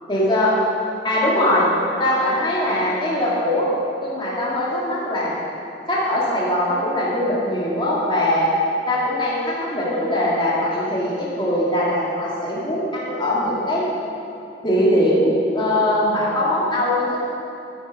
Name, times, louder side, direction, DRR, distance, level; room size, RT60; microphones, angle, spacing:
voice 1, 0.1-0.5 1.0-1.7 2.0-3.7 4.0-5.3 5.9-8.5 8.9-13.8 14.6-17.2, left 1 dB, 25° left, -7 dB, 2.3 m, -21 dB
9.4 x 9.3 x 4.9 m, 2.7 s
head